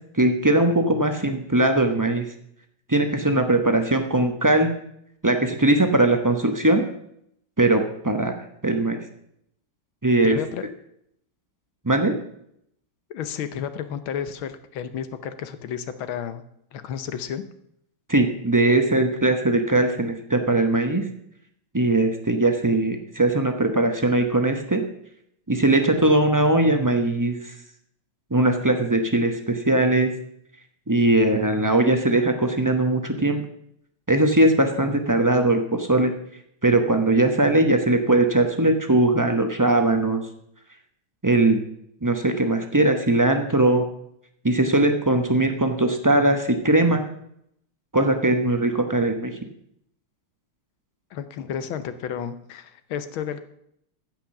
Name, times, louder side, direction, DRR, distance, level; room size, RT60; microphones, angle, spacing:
voice 1, 0.2-2.2 2.9-4.7 5.2-6.8 7.6-8.3 8.6-9.0 10.0-10.4 11.8-12.1 18.1-21.0 21.7-24.8 25.5-27.5 28.3-30.1 30.9-33.4 34.1-36.1 36.6-40.2 41.2-41.6 42.0-43.9 44.4-47.0 47.9-49.3, right 2 dB, 30° right, 5 dB, 0.3 m, -20 dB
voice 2, 10.2-10.7 13.1-16.4 16.7-17.4 51.1-53.4, left 8 dB, 75° left, 11 dB, 1.7 m, -31 dB
15.0 x 6.1 x 7.1 m, 0.73 s
omnidirectional pair, 2.3 m